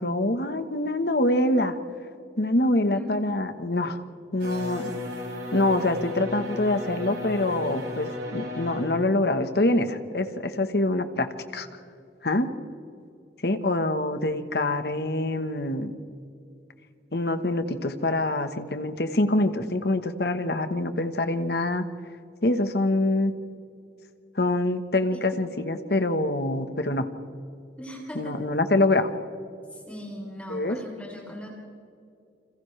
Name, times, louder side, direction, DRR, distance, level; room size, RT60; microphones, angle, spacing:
voice 1, 0.0-1.8 2.4-4.0 4.3-4.9 5.5-11.3 11.5-11.7 12.2-12.5 13.4-15.9 17.1-21.9 22.4-23.3 24.3-27.1 28.1-29.1 30.5-30.8, left 2 dB, 65° left, 9 dB, 1.3 m, -25 dB
sound 1, 4.4-9.0, left 2 dB, 80° right, 6.6 m, -35 dB
voice 2, 27.8-28.3 29.7-31.5, equal, 10° left, -1 dB, 3.5 m, -38 dB
29.0 x 26.5 x 3.4 m, 2.5 s
head